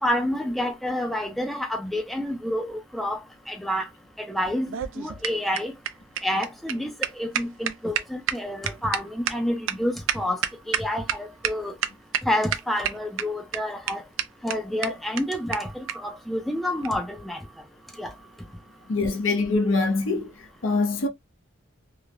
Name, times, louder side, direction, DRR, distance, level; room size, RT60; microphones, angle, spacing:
voice 1, 0.0-3.2 3.5-3.9 4.2-5.7 6.2-10.4 10.7-11.8 12.2-14.0 14.4-17.4 18.0-18.1, left 1 dB, ahead, 0.5 m, -28 dB
sound 1, 4.5-11.2 11.4-11.5 11.8-12.2 12.5-13.2 13.5-13.6 13.9-14.0 14.2-14.3 14.5-14.6 14.8-14.9 15.2-15.3 15.5-15.6 15.9-16.0 16.8-17.0, right 10 dB, 80° right, 0.4 m, -28 dB
voice 2, 18.9-20.3 20.6-21.1, left 3 dB, 75° left, 0.6 m, -23 dB
2.9 x 2.1 x 2.4 m
head